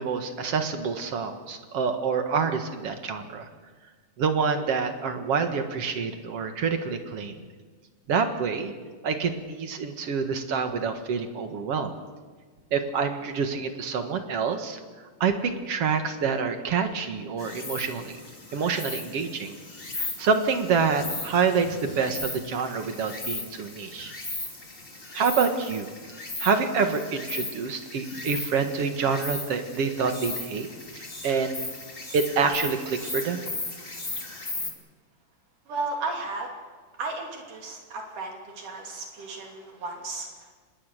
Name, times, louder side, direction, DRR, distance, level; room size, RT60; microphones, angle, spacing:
voice 1, 0.0-3.5 4.2-7.3 8.1-8.7 9.0-11.9 12.7-14.8 15.2-18.2 18.5-19.6 19.9-24.1 25.1-25.9 26.4-30.7 30.9-31.6 32.1-33.4, right 5 dB, 50° right, 7 dB, 2.4 m, -27 dB
Insect, 17.4-34.7, left 2 dB, 20° left, 2.4 m, -37 dB
voice 2, 35.7-36.5 37.0-40.5, right 3 dB, 70° right, 1 dB, 4.3 m, -34 dB
25.5 x 20.5 x 6.6 m, 1.5 s
omnidirectional pair, 3.9 m